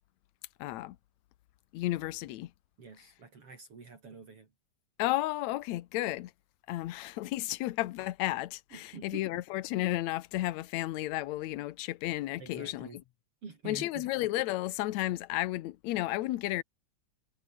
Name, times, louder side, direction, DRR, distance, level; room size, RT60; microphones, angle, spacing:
voice 1, 0.6-1.0 1.7-2.5 5.0-6.3 6.7-12.9 13.7-16.6, left 16 dB, 75° left, 2.1 m, -33 dB
voice 2, 2.8-4.5 8.7-9.4 12.4-13.0 13.4-14.1, right 5 dB, 50° right, 4.3 m, -47 dB
omnidirectional pair, 3.4 m